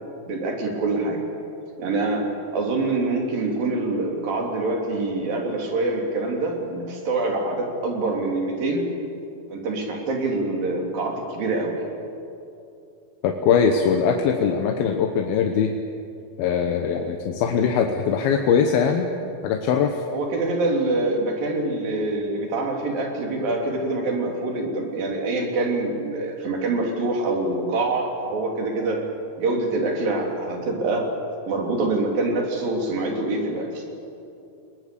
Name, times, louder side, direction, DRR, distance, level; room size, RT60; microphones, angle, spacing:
voice 1, 0.2-1.2 1.8-8.9 9.5-11.8 20.1-29.0 29.4-31.1 31.5-33.8, right 2 dB, 70° right, 1 dB, 4.8 m, -25 dB
voice 2, 13.2-15.7 16.4-19.1 19.4-20.0, left 6 dB, 85° left, 3 dB, 3.0 m, -21 dB
29.5 x 19.5 x 6.9 m, 2.7 s
omnidirectional pair, 4.2 m